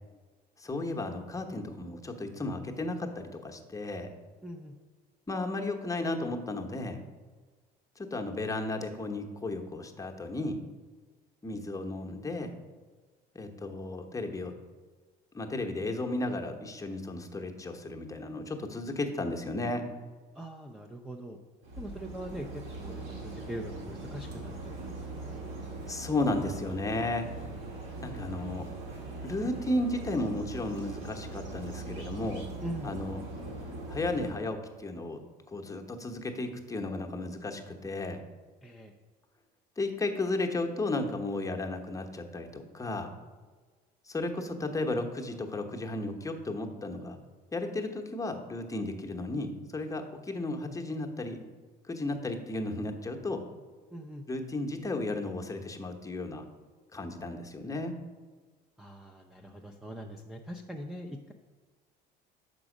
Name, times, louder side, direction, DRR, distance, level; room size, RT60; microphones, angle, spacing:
voice 1, 0.6-4.1 5.3-7.0 8.0-10.6 11.4-12.5 13.3-14.5 15.3-19.8 25.9-27.3 28.0-28.7 29.2-32.4 32.8-33.2 33.9-35.2 35.5-38.2 39.8-43.1 44.1-47.2 47.5-51.4 51.9-53.4 54.3-56.4 56.9-57.9, left 2 dB, 15° left, 2 dB, 0.9 m, -34 dB
voice 2, 4.4-4.7 20.3-21.4 21.8-22.5 22.8-24.5 24.8-25.3 32.6-32.9 38.6-38.9 53.9-54.3 58.8-61.3, right 1 dB, ahead, 2 dB, 0.5 m, -42 dB
sound 1, 21.6-34.3, right 2 dB, 75° right, 2.0 m, -41 dB
6.0 x 5.2 x 4.9 m, 1.4 s
supercardioid pair, 80°, 21 cm